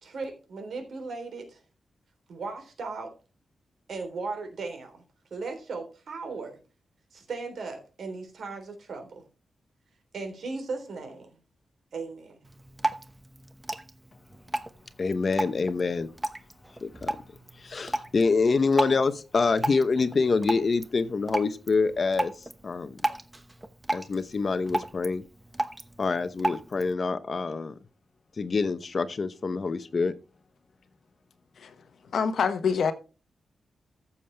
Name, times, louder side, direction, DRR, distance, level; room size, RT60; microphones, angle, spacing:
voice 1, 0.0-1.6 2.3-3.1 3.9-5.0 5.3-6.6 7.1-9.3 10.1-11.3 11.9-12.4, right 4 dB, 70° right, 3.6 m, -37 dB
Drip, 12.4-26.9, right 1 dB, 15° right, 0.9 m, -35 dB
voice 2, 15.0-16.1 16.8-17.2 17.6-23.0 23.9-25.2 26.0-27.7 28.4-30.1, left 4 dB, 45° left, 0.8 m, -26 dB
voice 3, 32.1-32.9, left 6 dB, 75° left, 1.1 m, -25 dB
14.5 x 7.2 x 3.4 m
wide cardioid pair, 110°, 0 cm